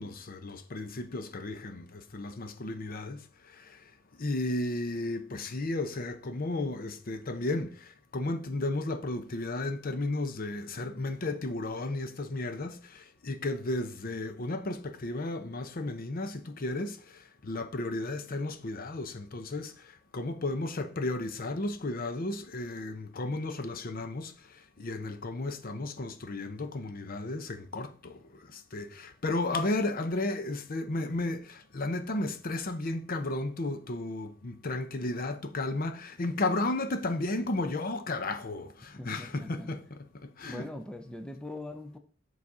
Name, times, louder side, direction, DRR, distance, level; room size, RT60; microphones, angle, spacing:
voice 1, 0.0-3.9 4.2-40.7, left 2 dB, 45° left, 0.7 m, -34 dB
voice 2, 39.0-39.8 40.5-42.0, left 1 dB, 5° left, 0.5 m, -41 dB
7.6 x 4.1 x 4.8 m
head